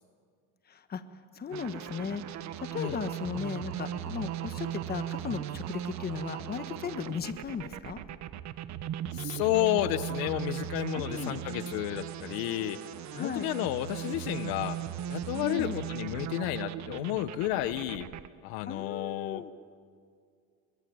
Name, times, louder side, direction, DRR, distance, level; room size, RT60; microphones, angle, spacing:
voice 1, 0.7-1.0 1.3-8.0 10.9-11.3 13.1-13.5 15.4-15.8 18.7-19.5, left 6 dB, 25° left, 10 dB, 1.4 m, -36 dB
sound 1, 1.5-18.3, right 10 dB, 50° right, 1.2 m, -38 dB
voice 2, 9.1-12.8 13.1-14.8 15.1-18.1 18.4-19.4, left 14 dB, 70° left, 13 dB, 1.1 m, -31 dB
24.5 x 22.5 x 9.5 m, 2.2 s
cardioid pair, 135°, 37 cm